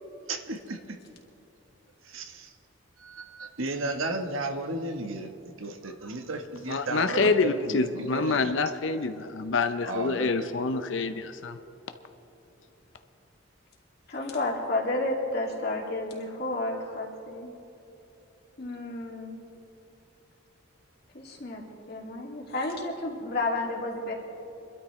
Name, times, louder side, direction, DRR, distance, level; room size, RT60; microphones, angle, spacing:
voice 1, 0.3-0.8 2.1-2.5 3.0-5.3 5.6-7.8 8.1-8.5 9.8-10.5, right 2 dB, 85° right, 5 dB, 1.2 m, -34 dB
voice 2, 6.7-11.6, left 4 dB, 70° left, 8 dB, 0.6 m, -27 dB
voice 3, 14.1-17.5 18.6-19.4 21.1-21.6 21.9-24.1, left 2 dB, 50° left, -1 dB, 2.4 m, -31 dB
25.5 x 12.5 x 3.2 m, 3.0 s
head